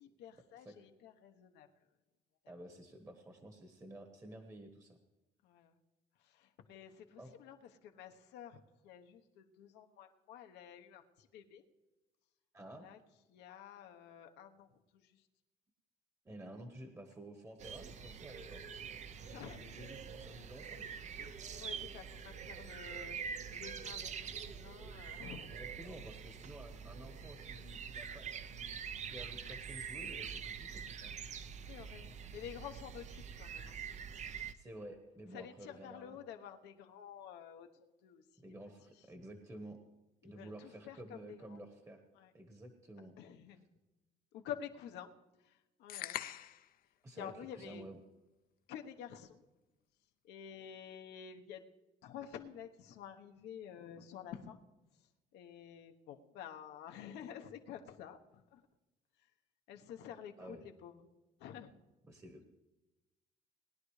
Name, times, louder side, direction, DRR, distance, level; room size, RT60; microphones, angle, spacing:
voice 1, 0.0-1.7 5.4-5.7 6.4-7.6 7.8-8.6 8.8-11.6 12.8-13.0 13.3-14.7 19.2-19.7 21.2-24.1 24.4-25.5 31.7-33.7 35.3-38.2 40.2-41.4 42.2-42.3 43.2-43.6 44.3-45.1 45.8-46.2 47.1-47.8 48.7-49.4 50.3-51.6 52.0-54.6 55.3-58.2 58.5-58.6 59.7-61.0 61.4-61.7, left 9 dB, 85° left, 5 dB, 1.1 m, -50 dB
voice 2, 2.5-5.0 7.2-7.3 12.5-12.8 16.2-18.6 19.2-20.8 25.4-28.7 29.1-31.2 34.5-36.2 38.4-39.8 40.2-42.0 42.3-43.1 43.5-43.6 47.0-48.0 60.4-60.7 62.0-62.5, right 1 dB, 15° right, 5 dB, 1.3 m, -52 dB
sound 1, 17.6-34.5, right 7 dB, 45° right, 0.7 m, -45 dB
sound 2, 45.9-46.7, left 11 dB, 60° left, 0.6 m, -42 dB
20.0 x 10.5 x 3.2 m, 1.1 s
cardioid pair, 110°, 17 cm